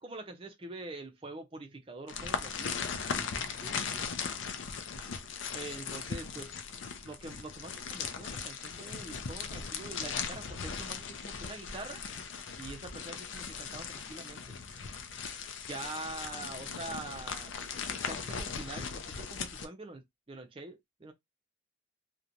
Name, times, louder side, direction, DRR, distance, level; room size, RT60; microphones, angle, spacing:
voice 1, 0.0-2.7 5.5-6.5 7.0-12.0 12.6-14.6 15.7-17.5 18.1-21.1, right 2 dB, 25° right, 0.5 m, -44 dB
sound 1, 2.1-19.7, left 6 dB, 70° left, 0.5 m, -38 dB
voice 2, 3.1-4.1 6.3-6.4 16.4-16.7, equal, 35° left, 1.1 m, -50 dB
2.9 x 2.1 x 2.5 m
head